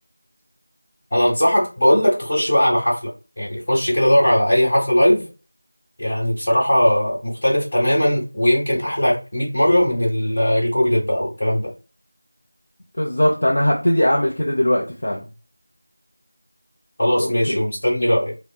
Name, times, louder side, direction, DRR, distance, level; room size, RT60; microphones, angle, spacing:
voice 1, 1.1-3.0 3.4-5.3 6.0-11.7 17.0-18.3, equal, 30° left, -5 dB, 1.6 m, -19 dB
voice 2, 13.0-15.2 17.2-17.6, equal, 45° left, -3 dB, 0.8 m, -20 dB
5.8 x 2.2 x 2.3 m, 0.33 s
figure-of-eight pair, 175°, 0 cm